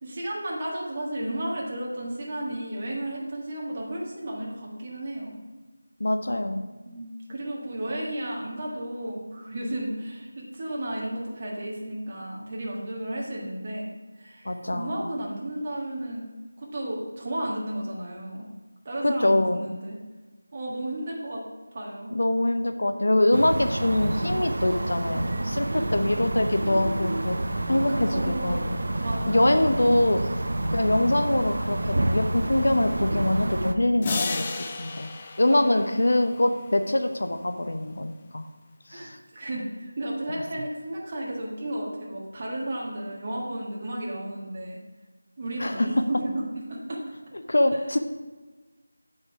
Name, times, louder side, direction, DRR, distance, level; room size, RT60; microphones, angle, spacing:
voice 1, 0.0-5.3 6.8-13.9 14.2-16.3 16.6-18.5 18.8-20.0 20.5-21.4 21.7-22.1 25.7-25.9 26.6-27.2 27.9-28.6 29.0-29.6 35.4-36.0 38.9-44.8 45.4-47.0, right 1 dB, 30° right, -3 dB, 1.5 m, -33 dB
voice 2, 6.0-6.6 14.4-15.0 19.0-19.6 22.1-27.4 27.7-28.8 29.3-30.2 30.7-34.5 34.8-35.1 35.4-38.5 38.9-39.2 45.6-45.9 47.5-48.0, left 1 dB, 70° left, 7 dB, 0.6 m, -24 dB
sound 1, 23.3-33.7, right 1 dB, 55° right, 0.6 m, -28 dB
sound 2, 34.0-36.8, left 3 dB, 20° left, 0.4 m, -33 dB
7.3 x 5.3 x 5.0 m, 1.2 s
figure-of-eight pair, 170°, 0 cm